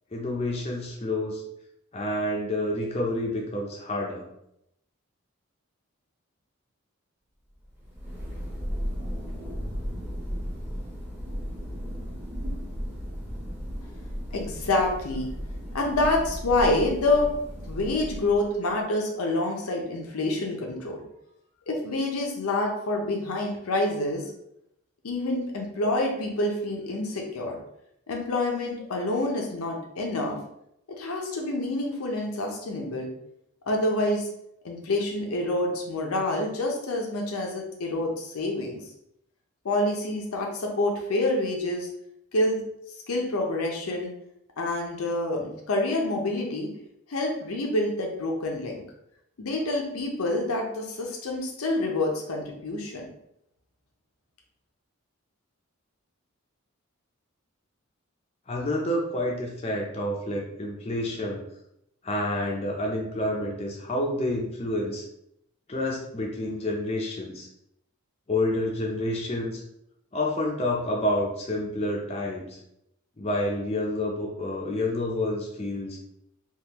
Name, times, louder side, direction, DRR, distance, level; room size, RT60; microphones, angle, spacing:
voice 1, 0.1-1.4 1.9-4.3 58.5-61.4 62.0-65.0 65.7-67.5 68.3-69.6 70.1-72.6 73.2-76.0, left 1 dB, 30° left, -1 dB, 0.5 m, -29 dB
Thunder, 7.6-18.7, equal, 10° right, 0.9 m, -35 dB
voice 2, 14.3-15.3 15.7-17.3 17.7-21.0 21.7-24.2 25.0-27.6 28.1-30.4 31.0-33.1 33.7-34.3 34.6-38.8 39.6-41.9 42.3-42.6 43.1-44.1 44.6-46.7 47.1-48.8 49.4-53.1, left 2 dB, 85° left, 0 dB, 0.6 m, -27 dB
3.6 x 2.4 x 2.9 m, 0.78 s
head